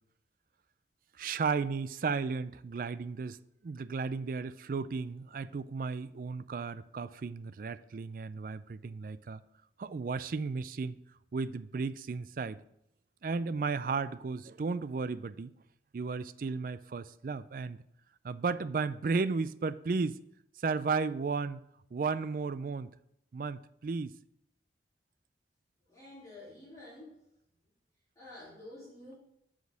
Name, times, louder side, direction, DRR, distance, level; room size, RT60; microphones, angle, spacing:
voice 1, 1.2-9.4 9.8-11.0 11.3-12.6 13.2-15.5 15.9-17.8 18.2-20.2 20.6-21.6 21.9-22.9 23.3-24.2, right 4 dB, 50° right, 0.4 m, -34 dB
voice 2, 25.9-27.1 28.2-29.2, left 1 dB, 20° left, 2.8 m, -49 dB
8.0 x 5.1 x 6.3 m
head